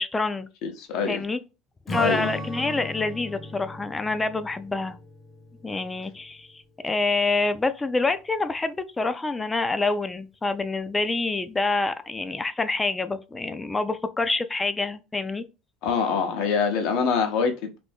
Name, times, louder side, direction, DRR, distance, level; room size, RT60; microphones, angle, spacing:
voice 1, 0.0-0.5 1.1-1.4 1.9-5.0 5.6-15.4, left 3 dB, 15° left, 0.3 m, -27 dB
voice 2, 0.6-1.2 2.0-2.2 15.8-17.8, left 5 dB, 70° left, 0.8 m, -25 dB
Strum, 1.9-6.5, left 1 dB, 30° left, 0.8 m, -37 dB
2.6 x 2.6 x 3.4 m
supercardioid pair, 120°, 0 cm